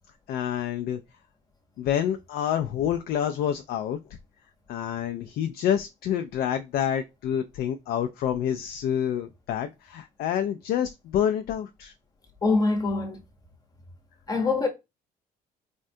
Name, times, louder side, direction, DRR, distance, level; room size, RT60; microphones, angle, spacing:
voice 1, 0.3-1.0 1.8-4.0 4.7-11.9, left 9 dB, 65° left, 0.4 m, -28 dB
voice 2, 12.4-13.2 14.3-14.7, left 3 dB, 20° left, 0.8 m, -24 dB
3.5 x 2.2 x 2.6 m
cardioid pair, 110°, 17 cm